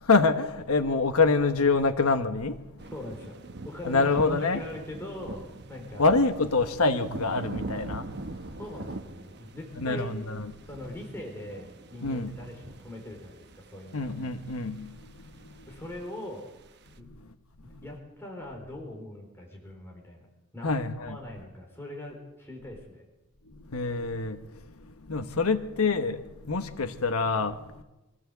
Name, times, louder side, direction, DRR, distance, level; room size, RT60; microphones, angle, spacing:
voice 1, 0.0-2.6 3.8-4.6 6.0-8.1 9.8-10.4 12.0-12.3 13.9-15.1 17.1-17.2 20.6-21.2 23.7-24.4 25.1-27.8, left 3 dB, 85° left, 1.2 m, -26 dB
voice 2, 2.8-6.1 8.6-10.1 10.7-14.1 15.7-16.5 17.0-17.1 17.6-20.3 20.5-20.8 21.1-23.1, left 1 dB, 10° left, 4.0 m, -41 dB
sound 1, 2.8-17.0, right 2 dB, 50° right, 1.0 m, -43 dB
24.0 x 15.5 x 8.0 m
head